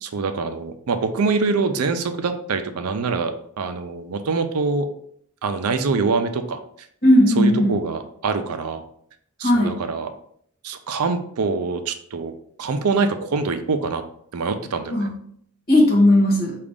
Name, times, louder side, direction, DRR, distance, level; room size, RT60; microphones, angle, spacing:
voice 1, 0.0-4.9 5.4-6.6 7.4-8.8 9.4-10.1 10.6-12.3 12.6-14.0 14.3-15.1, right 4 dB, 80° right, 8 dB, 0.5 m, -24 dB
voice 2, 7.0-7.8 9.4-9.8 14.9-15.1 15.7-16.6, left 1 dB, 45° left, -3 dB, 1.4 m, -16 dB
4.9 x 2.5 x 3.5 m, 0.65 s
head